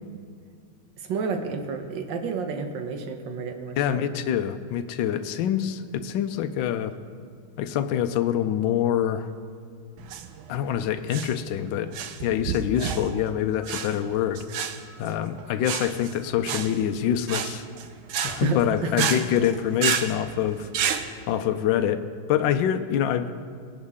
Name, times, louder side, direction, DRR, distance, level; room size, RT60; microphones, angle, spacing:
voice 1, 1.0-4.1 18.4-19.1, right 4 dB, 65° right, 5 dB, 1.7 m, -30 dB
voice 2, 3.8-6.9 7.6-9.3 10.5-14.4 15.0-17.6 18.2-20.7 21.3-23.3, left 10 dB, 75° left, 9 dB, 1.3 m, -25 dB
sound 1, 10.0-21.0, right 7 dB, 85° right, 1.5 m, -31 dB
20.5 x 10.5 x 3.6 m, 2.1 s
omnidirectional pair, 2.2 m